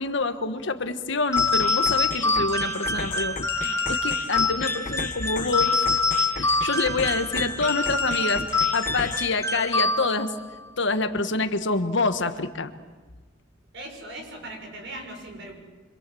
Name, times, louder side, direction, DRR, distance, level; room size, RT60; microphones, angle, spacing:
voice 1, 0.0-5.7 6.3-10.3 10.8-12.7, left 3 dB, 65° left, 9 dB, 1.5 m, -27 dB
sound 1, 1.3-10.4, left 3 dB, 15° left, 1.7 m, -25 dB
sound 2, 1.4-9.4, left 4 dB, 45° left, 1.0 m, -36 dB
voice 2, 13.7-15.5, right 1 dB, 65° right, 2 dB, 6.9 m, -39 dB
27.0 x 25.5 x 7.8 m, 1.3 s
head